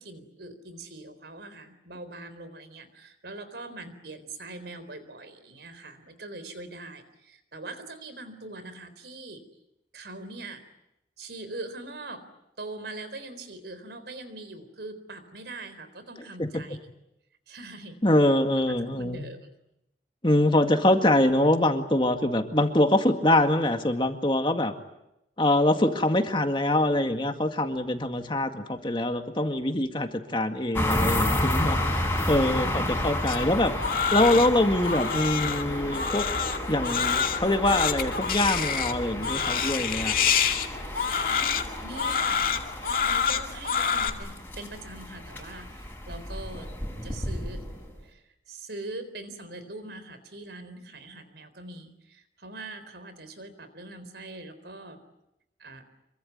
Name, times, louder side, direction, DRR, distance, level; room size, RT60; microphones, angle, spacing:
voice 1, 0.0-9.4 9.9-10.6 11.2-12.3 12.6-16.8 17.5-18.0 18.9-19.5 41.3-42.8 43.0-46.7 47.0-47.7 48.0-55.0 55.6-55.8, right 2 dB, 65° right, 12 dB, 3.9 m, -42 dB
voice 2, 18.0-19.3 20.2-24.7 25.4-31.8 32.3-33.7 34.1-36.3 36.7-40.2, left 1 dB, 25° left, 6 dB, 2.0 m, -24 dB
sound 1, 30.7-48.0, left 1 dB, 10° left, 5.6 m, -31 dB
Crying sobbing, 33.3-44.1, left 7 dB, 50° left, 2.3 m, -27 dB
26.5 x 23.5 x 9.5 m, 0.86 s
head